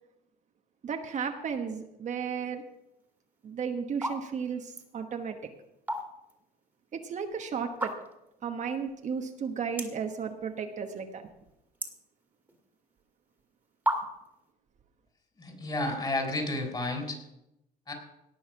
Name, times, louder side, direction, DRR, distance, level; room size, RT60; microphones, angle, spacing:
voice 1, 0.8-2.6 3.4-5.4 6.9-7.9 8.4-11.3, right 6 dB, 45° right, 5 dB, 1.2 m, -34 dB
sound 1, 3.2-3.4 3.9-4.2 4.5-4.9 5.6-6.4 6.7-6.8 7.7-8.3 8.8-8.9 9.1-9.2 9.7-10.1 10.5-11.0 11.3-12.6 13.3-13.4 13.8-14.4, right 1 dB, 10° right, 2.1 m, -33 dB
voice 2, 15.4-17.2 17.9-18.0, left 2 dB, 25° left, 3 dB, 4.2 m, -31 dB
18.0 x 6.5 x 6.0 m, 0.88 s
cardioid pair, 110°, 17 cm